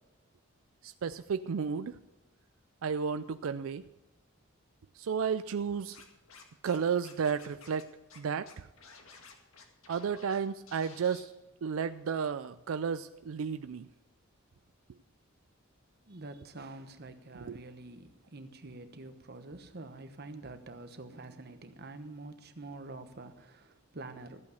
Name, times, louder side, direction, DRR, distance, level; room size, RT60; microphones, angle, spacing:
voice 1, 0.8-2.0 2.8-3.8 5.0-6.0 6.6-7.9 8.2-8.7 9.9-11.3 11.6-13.9 17.3-17.6, right 6 dB, 85° right, 12 dB, 0.4 m, -33 dB
Scratching (performance technique), 5.9-6.8 7.0-7.8 8.1-8.2 8.5-10.4 10.7-11.2, left 5 dB, 90° left, 2.0 m, -53 dB
voice 2, 16.1-24.4, right 2 dB, 50° right, 9 dB, 1.1 m, -46 dB
14.0 x 8.4 x 6.5 m, 1.0 s
head